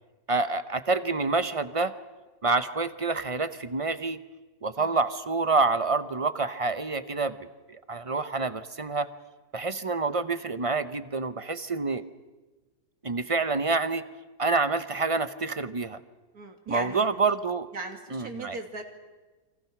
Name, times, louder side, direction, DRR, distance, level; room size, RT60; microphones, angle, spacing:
voice 1, 0.3-1.9 2.4-4.2 4.6-7.4 7.7-9.1 9.5-12.0 13.0-14.0 14.4-16.0 16.7-17.7 18.1-18.6, right 3 dB, 30° right, 12 dB, 0.6 m, -27 dB
voice 2, 16.3-17.1 17.7-18.8, right 3 dB, 60° right, 4 dB, 3.2 m, -38 dB
29.5 x 25.5 x 6.0 m, 1.2 s
omnidirectional pair, 1.8 m